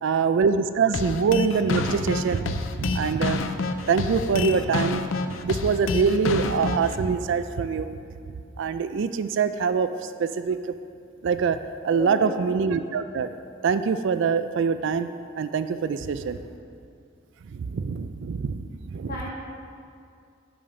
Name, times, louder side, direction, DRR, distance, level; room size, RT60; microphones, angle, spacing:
voice 1, 0.0-3.4 3.9-5.0 5.3-7.9 8.6-10.7 11.2-11.6 11.8-13.3 13.6-15.1 15.4-16.4 17.5-19.1, right 5 dB, 65° right, 10 dB, 0.4 m, -24 dB
sound 1, 0.9-7.0, left 4 dB, 80° left, 0.5 m, -28 dB
voice 2, 11.9-12.4 16.1-16.5 19.1-19.3, left 1 dB, 55° left, -6 dB, 2.5 m, -35 dB
8.6 x 7.2 x 5.1 m, 2.4 s
head